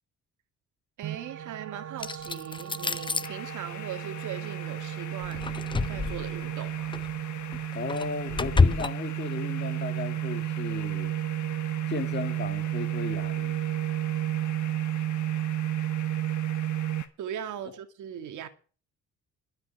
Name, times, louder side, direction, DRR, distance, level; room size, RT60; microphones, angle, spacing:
sound 1, 1.0-17.0, right 13 dB, 55° right, 1.0 m, -32 dB
voice 1, 1.0-5.5 5.9-6.9 17.2-18.5, right 9 dB, 80° right, 2.0 m, -39 dB
sound 2, 2.0-3.3 5.2-6.4 6.9-7.1 7.5-8.9, left 4 dB, 15° left, 0.5 m, -27 dB
sound 3, 3.2-17.1, left 10 dB, 70° left, 1.6 m, -44 dB
voice 2, 7.7-11.1 11.9-13.6, left 5 dB, 35° left, 2.1 m, -35 dB
12.5 x 5.9 x 9.4 m
cardioid pair, 90°, 30 cm